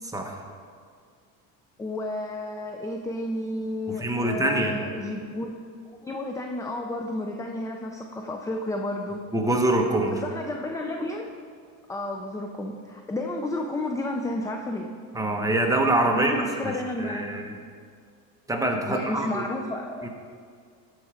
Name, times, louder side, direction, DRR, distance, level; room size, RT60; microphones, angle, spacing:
voice 1, 1.8-5.6 6.0-9.2 10.1-11.4 11.9-14.9 16.1-17.4 18.9-20.1, left 1 dB, 10° left, 2 dB, 0.4 m, -31 dB
voice 2, 4.0-4.8 9.3-10.2 15.1-16.3 16.6-17.5 18.5-19.4 20.0-20.1, right 1 dB, 10° right, 1 dB, 1.1 m, -25 dB
13.0 x 4.7 x 5.0 m, 2.1 s
supercardioid pair, 110°, 41 cm